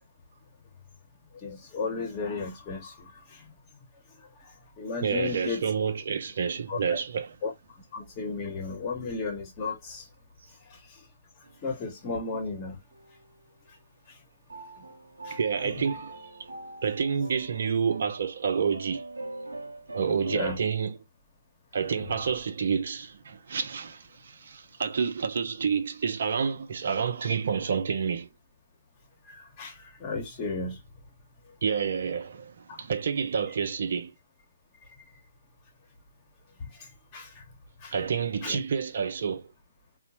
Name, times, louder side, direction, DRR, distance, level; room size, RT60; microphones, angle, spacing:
voice 1, 1.3-3.4 4.2-5.6 6.7-7.0 7.4-10.1 10.6-11.1 11.6-12.8 14.1-14.2 15.2-15.9 20.2-20.6 29.2-30.8 32.7-32.8 36.6-37.4 37.8-37.9 38.4-38.6, left 4 dB, 25° left, 1.0 m, -35 dB
voice 2, 5.0-7.4 15.3-16.2 16.8-19.0 19.9-21.0 21.7-28.3 31.6-34.1 37.9-39.5, right 6 dB, 55° right, 0.5 m, -29 dB
sound 1, 11.4-12.2 12.9-13.5 14.5-20.4, right 2 dB, 80° right, 0.8 m, -43 dB
3.6 x 2.1 x 2.8 m
figure-of-eight pair, 135°, 0 cm